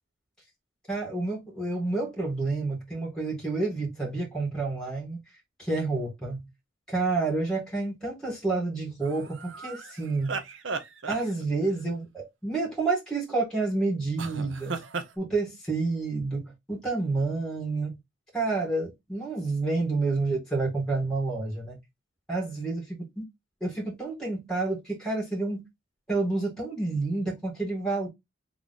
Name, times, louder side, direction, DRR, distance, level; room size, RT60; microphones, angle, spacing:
voice 1, 0.9-5.2 5.6-6.4 6.9-10.4 11.1-14.8 15.2-17.9 18.3-21.8 22.3-23.0 23.6-25.6 26.1-28.1, right 3 dB, 5° left, 2.2 m, -29 dB
sound 1, 9.0-11.8 14.2-15.1, right 4 dB, 70° right, 0.7 m, -36 dB
3.6 x 3.6 x 3.8 m
head